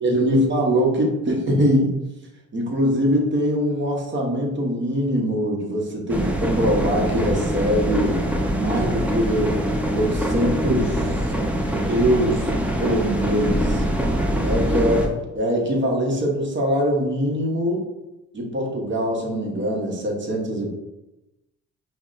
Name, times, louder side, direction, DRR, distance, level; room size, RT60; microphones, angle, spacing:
voice 1, 0.0-1.9 2.5-8.2 8.5-9.5 9.9-11.3 11.9-12.5 12.8-13.8 14.4-17.8 18.3-20.7, equal, 40° right, 0 dB, 1.0 m, -22 dB
Arcelor warmwalserij, 6.1-15.1, equal, 5° right, 0.5 m, -23 dB
5.4 x 2.1 x 2.5 m, 0.97 s
cardioid pair, 90°, 30 cm